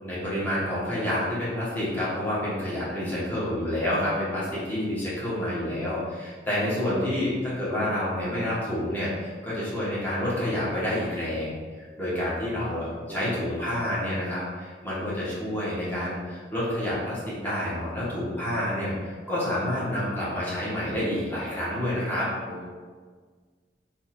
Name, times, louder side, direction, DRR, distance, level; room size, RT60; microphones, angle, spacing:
voice 1, 0.0-22.3, left 1 dB, 10° left, -10 dB, 0.9 m, -28 dB
voice 2, 12.5-13.4 22.5-22.7, equal, 35° right, -6 dB, 0.6 m, -40 dB
2.7 x 2.3 x 4.1 m, 1.5 s
head